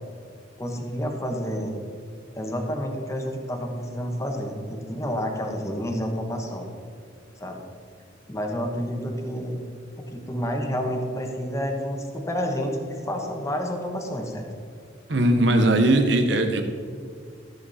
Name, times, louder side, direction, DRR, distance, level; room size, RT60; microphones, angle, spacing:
voice 1, 0.6-1.7 2.3-6.6 7.4-7.6 8.3-9.6 9.9-14.4, equal, 15° left, 2 dB, 1.3 m, -29 dB
voice 2, 15.1-16.6, right 1 dB, 65° right, 6 dB, 1.1 m, -19 dB
14.0 x 7.4 x 4.2 m, 2.2 s
head